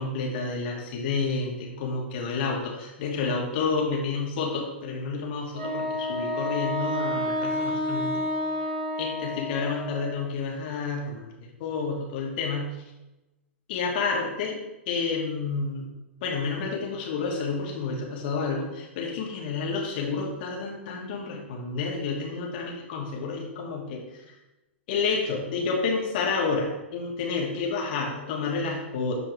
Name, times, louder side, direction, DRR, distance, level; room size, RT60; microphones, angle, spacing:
voice 1, 0.0-8.2 9.0-11.3 11.6-12.7 13.7-14.6 14.9-15.9 16.2-24.0 24.9-29.2, left 4 dB, 50° left, -2 dB, 2.7 m, -29 dB
Wind instrument woodwind instrument, 5.6-10.2, left 1 dB, 55° right, 3.3 m, -30 dB
12.5 x 5.3 x 3.4 m, 1.0 s
figure-of-eight pair, 100°, 7 cm